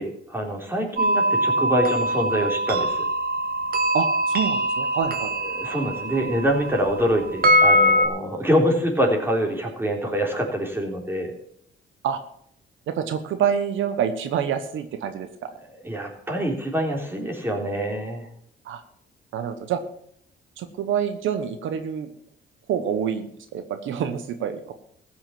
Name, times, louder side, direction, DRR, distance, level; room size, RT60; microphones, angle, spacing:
voice 1, 0.0-3.1 5.4-11.3 15.8-18.3, equal, 10° right, 0 dB, 3.6 m, -25 dB
sound 1, 1.0-8.1, equal, 50° right, 1.8 m, -22 dB
voice 2, 3.9-5.3 12.0-12.2 12.9-15.5 18.6-18.8 19.3-19.8 20.6-22.1 22.7-24.7, right 8 dB, 80° right, 8 dB, 1.1 m, -27 dB
15.0 x 6.1 x 7.5 m, 0.68 s
cardioid pair, 90°, 20 cm